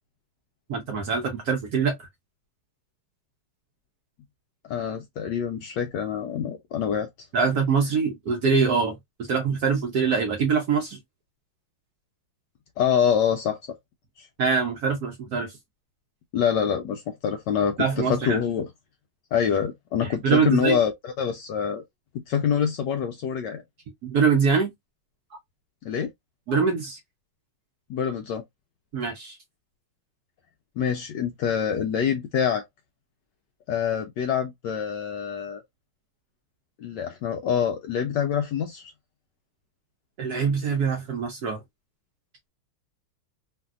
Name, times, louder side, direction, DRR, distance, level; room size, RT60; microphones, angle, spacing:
voice 1, 0.7-2.1 7.3-11.0 14.4-15.6 17.8-18.4 20.0-20.8 24.0-24.7 25.3-25.4 26.5-27.0 28.9-29.4 40.2-41.6, right 5 dB, 65° right, 1.0 m, -24 dB
voice 2, 4.7-7.1 12.8-13.6 14.2-14.3 16.3-18.7 19.3-21.8 22.3-23.6 25.8-26.1 27.9-28.4 30.8-32.6 33.7-35.6 36.8-38.9, left 8 dB, 75° left, 1.0 m, -26 dB
3.2 x 2.6 x 2.3 m
omnidirectional pair, 2.3 m